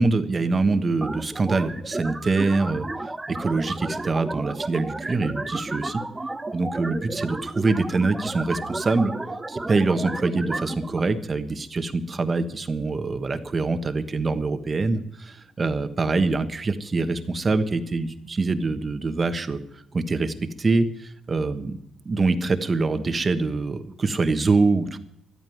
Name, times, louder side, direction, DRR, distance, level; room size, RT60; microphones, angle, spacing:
voice 1, 0.0-2.9 3.4-6.0 6.5-9.1 9.5-19.6 19.9-21.8 22.0-25.0, right 3 dB, 30° right, 10 dB, 1.3 m, -24 dB
sound 1, 1.0-11.0, right 2 dB, 15° right, 1.0 m, -33 dB
12.5 x 9.1 x 9.5 m, 0.73 s
cardioid pair, 90°, 0 cm